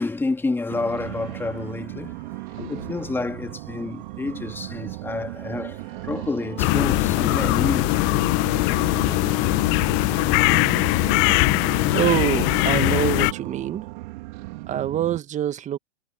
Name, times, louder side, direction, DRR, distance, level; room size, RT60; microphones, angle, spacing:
voice 1, 0.0-2.2 2.7-8.2, left 3 dB, 5° left, 2.5 m, -29 dB
sound 1, 0.7-15.2, right 23 dB, 45° right, 3.4 m, -36 dB
sound 2, 1.0-4.2 5.3-8.6, left 8 dB, 75° left, 5.8 m, -46 dB
sound 3, 6.6-13.3, left 27 dB, 35° left, 1.1 m, -21 dB
voice 2, 11.9-13.8 14.7-15.8, right 11 dB, 20° right, 1.8 m, -25 dB
hypercardioid pair, 120°, 34 cm